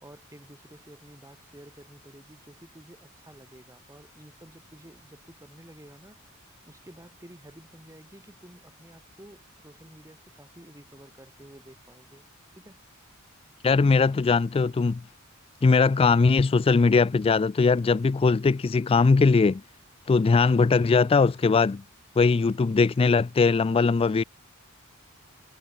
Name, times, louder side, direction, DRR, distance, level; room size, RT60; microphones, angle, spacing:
voice 1, 0.0-12.3 12.5-12.8, right 1 dB, 15° right, 2.8 m, -51 dB
voice 2, 13.6-15.0 15.6-19.6 20.1-21.8 22.2-24.2, left 4 dB, 25° left, 0.3 m, -20 dB
head